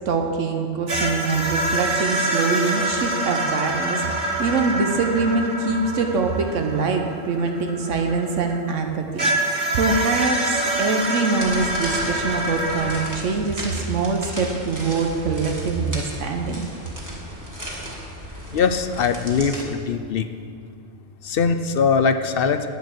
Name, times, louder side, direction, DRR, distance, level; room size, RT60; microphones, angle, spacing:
voice 1, 0.1-16.7, right 4 dB, 80° right, 4 dB, 1.2 m, -24 dB
sound 1, 0.9-8.5 9.2-13.0, right 1 dB, 50° right, 1.6 m, -26 dB
sound 2, 11.4-19.6, equal, 15° right, 1.9 m, -35 dB
voice 2, 18.5-20.3 21.2-22.7, left 5 dB, 60° left, 9 dB, 0.7 m, -21 dB
9.8 x 9.2 x 6.6 m, 2.3 s
omnidirectional pair, 1.3 m